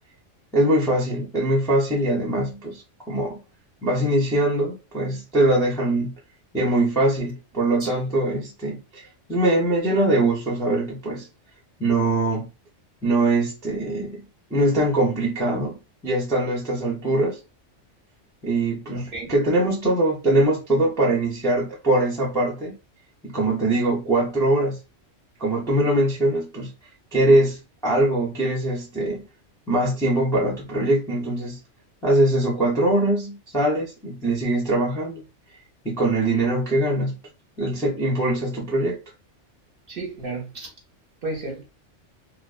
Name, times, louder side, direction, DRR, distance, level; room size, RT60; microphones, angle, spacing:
voice 1, 0.5-2.8 3.1-3.4 3.8-6.1 6.5-9.0 9.3-11.3 11.8-12.5 13.0-14.2 14.5-15.8 16.0-17.4 18.4-22.8 23.2-24.8 25.4-26.7 27.1-29.3 29.7-31.6 32.0-35.2 35.8-37.2 37.6-39.0, right 1 dB, 5° left, 0.5 m, -22 dB
voice 2, 39.9-40.7 41.2-41.6, right 2 dB, 55° right, 0.8 m, -32 dB
2.5 x 2.0 x 2.4 m
omnidirectional pair, 1.3 m